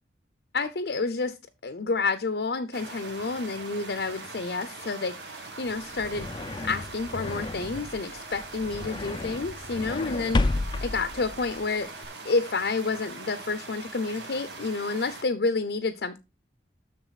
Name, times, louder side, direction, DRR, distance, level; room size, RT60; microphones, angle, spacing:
voice 1, 0.5-1.4 1.6-6.3 6.6-11.9 12.2-16.2, left 3 dB, 70° left, 0.6 m, -29 dB
sound 1, 2.7-15.2, right 3 dB, 75° right, 1.6 m, -42 dB
sound 2, 5.7-12.1, left 2 dB, 25° left, 0.4 m, -32 dB
7.1 x 6.5 x 4.0 m
head